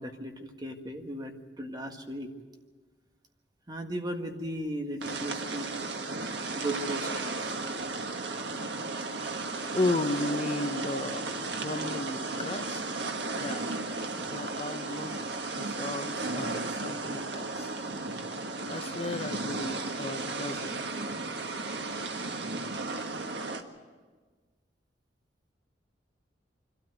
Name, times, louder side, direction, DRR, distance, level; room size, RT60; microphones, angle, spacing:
voice 1, 0.0-2.3 3.7-5.7 6.5-7.5, right 1 dB, 25° right, 4 dB, 1.7 m, -36 dB
sound 1, 5.0-23.6, right 3 dB, 70° right, 1.5 m, -34 dB
voice 2, 9.7-13.0 13.3-13.8 14.1-15.3 15.5-17.8 18.7-20.8, left 2 dB, 35° left, 8 dB, 0.9 m, -34 dB
24.5 x 13.0 x 9.3 m, 1.4 s
head